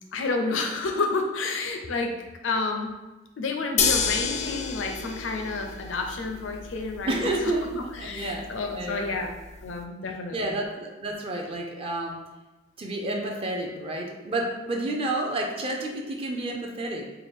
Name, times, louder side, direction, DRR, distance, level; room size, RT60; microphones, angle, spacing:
voice 1, 0.1-2.1 2.4-2.9 3.4-7.2 8.0-9.3 9.6-10.6, left 3 dB, 90° left, 4 dB, 0.5 m, -30 dB
sound 1, 3.8-9.8, left 6 dB, 40° left, 0.3 m, -31 dB
voice 2, 7.0-9.2 10.3-12.2 12.8-17.1, right 1 dB, 30° right, 0 dB, 0.5 m, -30 dB
4.4 x 2.2 x 3.5 m, 1.1 s
head